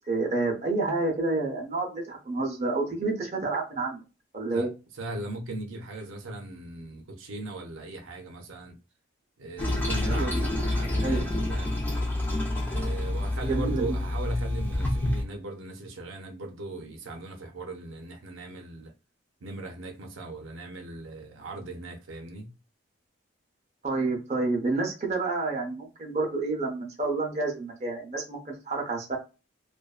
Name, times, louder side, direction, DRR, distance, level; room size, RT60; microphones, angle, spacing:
voice 1, 0.1-4.0 4.3-4.7 10.1-10.5 11.0-11.3 13.5-14.0 23.8-29.2, right 3 dB, 35° right, 0.6 m, -29 dB
voice 2, 4.9-8.7 9.4-11.8 12.7-18.9 19.4-22.5, right 2 dB, 75° right, 0.5 m, -38 dB
Toilet flush, 9.6-15.2, left 1 dB, 10° left, 0.5 m, -28 dB
2.5 x 2.2 x 2.3 m
head